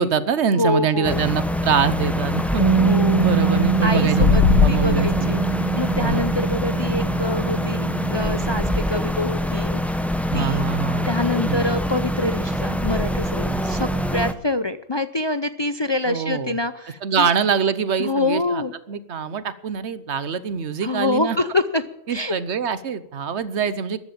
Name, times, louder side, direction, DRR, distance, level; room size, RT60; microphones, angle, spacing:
voice 1, 0.0-2.6 3.1-5.4 6.0-6.2 10.3-11.1 11.5-11.6 13.5-13.6 16.1-16.6 17.0-18.6 18.9-21.4 22.1-24.0, right 6 dB, 75° right, 15 dB, 1.2 m, -24 dB
voice 2, 0.6-1.2 2.8-3.3 3.8-5.4 5.8-9.8 10.3-10.7 11.1-17.3 18.0-18.7 20.8-22.4, left 2 dB, 30° left, 12 dB, 0.5 m, -25 dB
sound 1, 1.0-14.3, equal, ahead, 0.8 m, -25 dB
Bass guitar, 2.6-8.8, right 5 dB, 30° right, 0.8 m, -23 dB
sound 2, 4.2-4.8, left 6 dB, 75° left, 1.3 m, -15 dB
14.0 x 11.5 x 8.6 m, 0.84 s
omnidirectional pair, 1.2 m